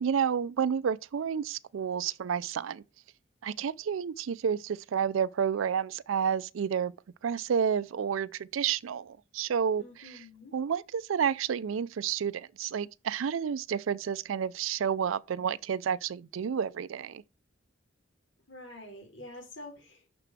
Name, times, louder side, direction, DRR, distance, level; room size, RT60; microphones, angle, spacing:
voice 1, 0.0-2.8 3.4-6.9 7.2-10.2 10.5-17.2, right 7 dB, 90° right, 0.4 m, -30 dB
voice 2, 9.8-10.5 18.5-20.1, left 1 dB, 70° left, 4.2 m, -47 dB
6.6 x 6.0 x 6.0 m
head